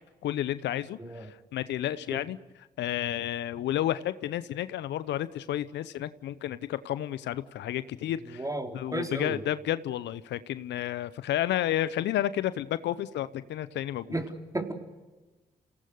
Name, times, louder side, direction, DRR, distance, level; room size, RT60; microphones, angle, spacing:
voice 1, 0.2-2.4 2.8-8.4 8.7-14.2, left 12 dB, 75° left, 15 dB, 0.7 m, -31 dB
voice 2, 8.3-9.4 14.1-14.7, right 2 dB, 20° right, 2 dB, 4.4 m, -34 dB
29.0 x 18.0 x 6.7 m, 1.2 s
hypercardioid pair, 40°, 19 cm